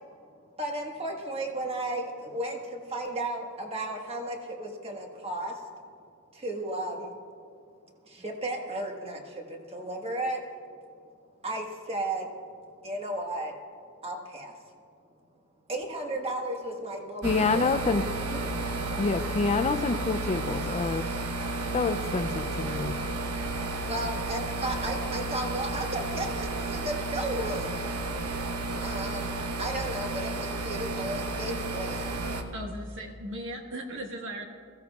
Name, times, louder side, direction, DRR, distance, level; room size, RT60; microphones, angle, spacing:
voice 1, 0.6-5.6 6.3-7.1 8.0-10.4 11.4-12.3 12.8-13.5 14.0-14.6 15.7-18.7 23.9-27.8 28.8-32.2, right 1 dB, 25° right, 1 dB, 1.5 m, -34 dB
voice 2, 17.2-18.0 19.0-21.1 21.7-22.9, left 4 dB, 30° left, 9 dB, 0.4 m, -27 dB
sound 1, 17.2-32.4, right 2 dB, 85° right, 1.0 m, -32 dB
voice 3, 32.5-34.4, right 1 dB, 60° right, 2 dB, 1.4 m, -37 dB
22.0 x 15.5 x 2.4 m, 2.3 s
head